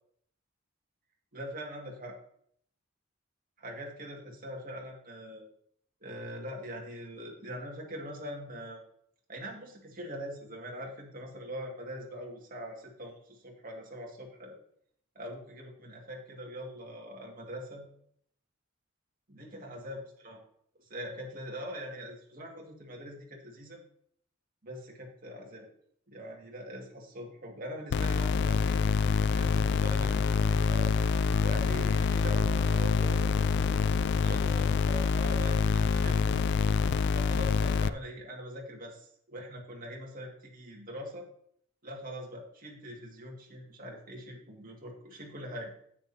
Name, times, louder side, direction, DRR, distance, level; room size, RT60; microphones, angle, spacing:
voice 1, 1.3-2.2 3.6-5.4 6.0-8.8 9.3-14.6 15.2-17.9 19.3-20.4 20.9-23.8 24.6-25.7 26.1-28.8 29.3-30.9 31.4-33.3 34.2-36.4 37.1-41.3 41.8-45.7, equal, 45° right, -1 dB, 2.1 m, -42 dB
sound 1, 27.9-37.9, left 5 dB, 60° left, 0.3 m, -26 dB
9.7 x 9.0 x 2.8 m, 0.66 s
head